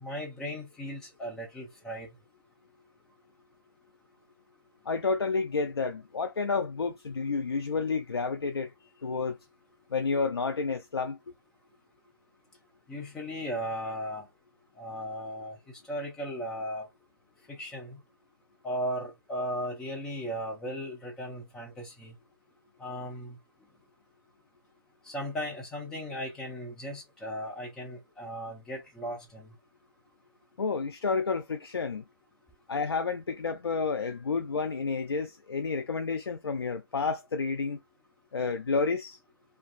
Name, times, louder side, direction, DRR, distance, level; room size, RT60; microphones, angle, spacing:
voice 1, 0.0-2.1 12.9-14.3 14.8-15.6 15.9-16.9 17.5-18.0 18.6-22.1 22.8-23.4 25.1-29.5 34.0-34.2, equal, 5° left, 0.5 m, -36 dB
voice 2, 4.8-8.7 9.0-9.4 9.9-11.2 30.6-32.0 32.7-37.8 38.3-39.2, left 4 dB, 80° left, 0.4 m, -30 dB
2.5 x 2.3 x 2.4 m
figure-of-eight pair, 150°, 13 cm